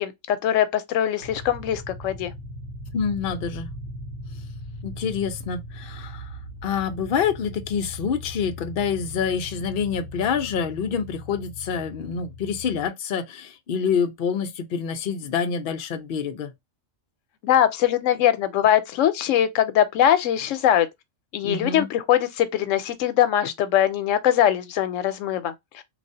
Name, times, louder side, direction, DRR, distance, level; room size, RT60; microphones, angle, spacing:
voice 1, 0.0-2.3 17.4-20.9 21.3-25.8, left 10 dB, 90° left, 1.0 m, -22 dB
sound 1, 1.2-12.9, left 1 dB, 65° right, 1.3 m, -39 dB
voice 2, 2.9-3.7 4.8-6.3 6.6-16.5 21.4-21.9, left 6 dB, 55° left, 0.7 m, -27 dB
3.3 x 2.4 x 2.6 m
omnidirectional pair, 1.3 m